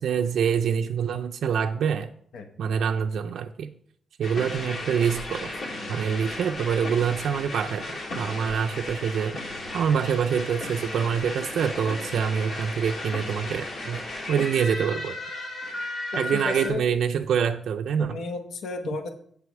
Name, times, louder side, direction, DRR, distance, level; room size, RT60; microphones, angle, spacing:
voice 1, 0.0-2.1 2.6-3.7 4.2-5.5 5.9-7.9 8.2-9.4 9.7-14.0 14.3-15.2 16.1-18.2, right 7 dB, 65° right, 5 dB, 0.4 m, -25 dB
sound 1, 4.2-16.7, left 2 dB, 55° left, 2.5 m, -35 dB
voice 2, 16.3-16.8 18.0-19.1, left 3 dB, 80° left, 6 dB, 0.9 m, -32 dB
8.1 x 4.8 x 7.1 m, 0.62 s
wide cardioid pair, 175°, 0 cm